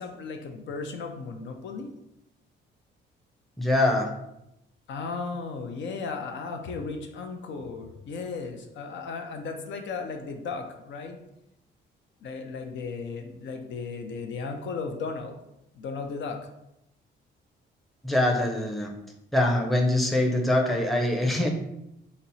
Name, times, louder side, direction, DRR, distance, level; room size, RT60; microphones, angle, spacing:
voice 1, 0.0-1.9 4.9-11.2 12.2-15.4 15.7-16.4, left 4 dB, 65° left, 4 dB, 0.6 m, -35 dB
voice 2, 3.6-4.1 18.0-18.9 19.3-21.5, left 1 dB, ahead, 1 dB, 0.6 m, -23 dB
4.1 x 2.0 x 4.0 m, 0.85 s
cardioid pair, 90°, 20 cm